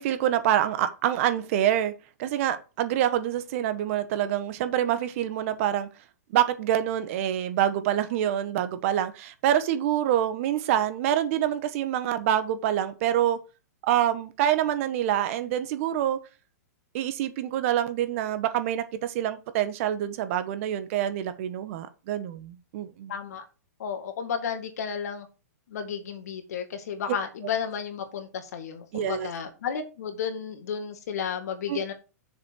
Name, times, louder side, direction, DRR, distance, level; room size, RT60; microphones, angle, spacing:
voice 1, 0.0-1.9 2.2-5.9 6.3-13.4 13.9-16.2 16.9-23.1 28.9-29.3 31.7-31.8, right 11 dB, 50° right, 1.3 m, -26 dB
voice 2, 23.1-23.4 23.8-25.3 25.7-31.9, left 7 dB, 70° left, 2.2 m, -32 dB
6.8 x 5.3 x 6.4 m
hypercardioid pair, 125°, 9 cm